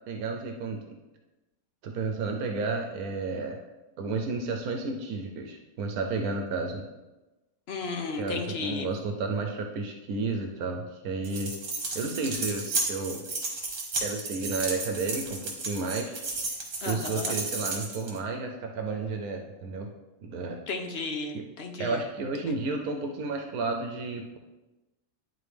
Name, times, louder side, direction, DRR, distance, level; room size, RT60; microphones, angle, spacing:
voice 1, 0.1-1.0 1.8-3.6 4.0-6.9 8.2-11.5 11.9-13.3 14.0-16.2 16.9-19.9 20.2-20.6 21.3-21.4 21.8-24.4, right 3 dB, 80° right, 3 dB, 1.1 m, -32 dB
voice 2, 7.7-8.9 16.8-17.4 20.7-22.0, left 3 dB, 55° left, 3 dB, 0.9 m, -33 dB
sound 1, 11.2-18.2, right 3 dB, 60° right, 1.6 m, -33 dB
10.5 x 4.0 x 3.3 m, 1.1 s
omnidirectional pair, 1.6 m